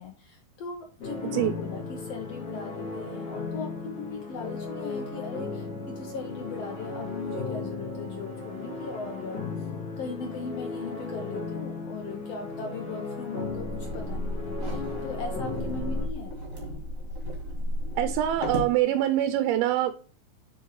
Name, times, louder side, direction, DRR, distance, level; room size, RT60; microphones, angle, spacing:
voice 1, 0.0-9.5 10.0-16.3, left 4 dB, 85° left, 3 dB, 1.4 m, -39 dB
sound 1, 1.0-16.1, left 4 dB, 45° left, 3.3 m, -36 dB
sound 2, 13.4-18.8, left 1 dB, 25° right, 2.3 m, -33 dB
voice 2, 18.0-19.9, right 12 dB, 85° right, 9 dB, 2.5 m, -24 dB
7.8 x 5.3 x 3.1 m, 0.39 s
omnidirectional pair, 4.3 m